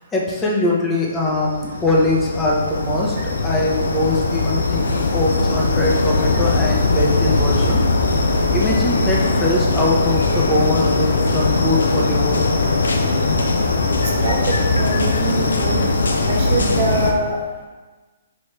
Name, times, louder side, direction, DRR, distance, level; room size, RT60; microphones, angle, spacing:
voice 1, 0.1-3.1 3.4-7.8 8.5-12.5, left 2 dB, 15° left, -3 dB, 0.7 m, -22 dB
sound 1, 1.2-17.1, left 3 dB, 85° left, 0.4 m, -20 dB
voice 2, 14.2-15.9 16.2-17.4, right 3 dB, 45° right, 0 dB, 0.6 m, -24 dB
3.2 x 2.6 x 3.2 m, 1.3 s
hypercardioid pair, 140°, 0 cm